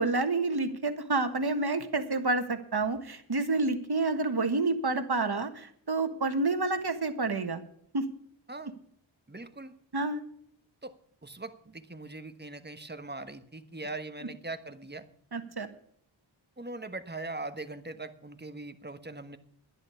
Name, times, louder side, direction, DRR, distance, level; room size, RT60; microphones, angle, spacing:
voice 1, 0.0-7.6 7.9-8.0 9.9-10.2 15.3-15.7, right 3 dB, 50° right, 8 dB, 1.6 m, -29 dB
voice 2, 9.3-9.7 10.8-10.9 11.2-15.1 16.6-19.4, right 2 dB, 20° right, 9 dB, 1.2 m, -41 dB
11.5 x 10.5 x 7.0 m, 0.66 s
wide cardioid pair, 60°, 47 cm